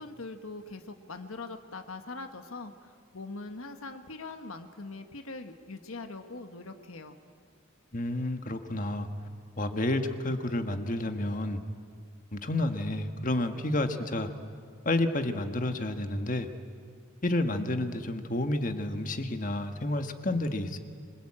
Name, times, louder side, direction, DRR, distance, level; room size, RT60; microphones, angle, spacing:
voice 1, 0.0-7.2, left 3 dB, 80° left, 6 dB, 1.4 m, -42 dB
voice 2, 7.9-9.1 9.6-11.6 12.3-14.3 14.8-16.5 17.2-20.8, left 1 dB, 40° left, 7 dB, 1.5 m, -30 dB
26.5 x 21.5 x 8.8 m, 2.1 s
head